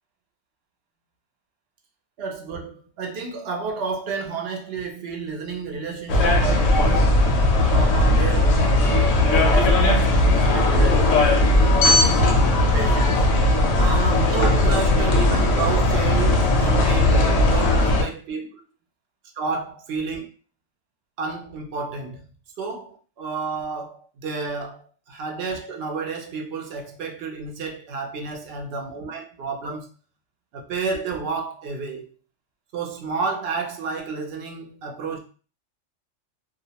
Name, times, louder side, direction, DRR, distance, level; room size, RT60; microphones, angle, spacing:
voice 1, 2.2-7.2 7.7-11.2 11.7-12.4 12.7-13.3 13.7-18.6 19.4-20.2 21.2-22.2 22.6-29.9 30.5-32.1 32.7-35.2, right 4 dB, 65° right, 0.7 m, -31 dB
sound 1, 6.1-18.0, left 1 dB, 80° left, 0.9 m, -18 dB
2.4 x 2.0 x 2.7 m
omnidirectional pair, 1.3 m